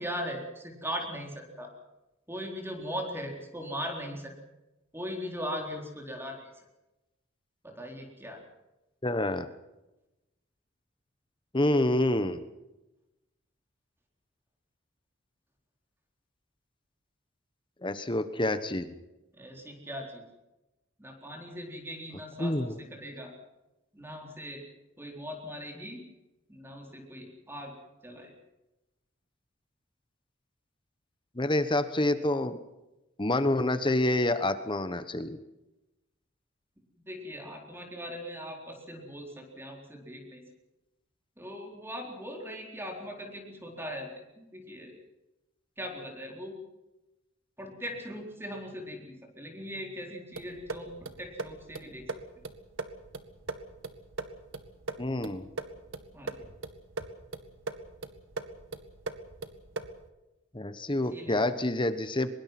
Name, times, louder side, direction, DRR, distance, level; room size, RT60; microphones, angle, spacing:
voice 1, 0.0-1.7 2.3-4.3 4.9-6.6 7.6-8.4 19.4-20.2 21.0-23.3 23.9-24.6 25.0-26.0 26.5-27.7 28.0-28.3 37.0-40.4 41.4-44.1 44.4-45.0 45.8-46.5 47.6-52.1 56.1-56.5 61.1-61.4, equal, 10° right, 2 dB, 4.2 m, -39 dB
voice 2, 9.0-9.5 11.5-12.4 17.8-18.9 22.4-22.8 31.4-32.6 33.2-35.4 55.0-55.5 60.5-62.3, left 1 dB, 25° left, 11 dB, 1.1 m, -27 dB
sound 1, 50.3-60.1, right 3 dB, 65° right, 1.9 m, -40 dB
24.0 x 22.0 x 6.0 m, 0.98 s
head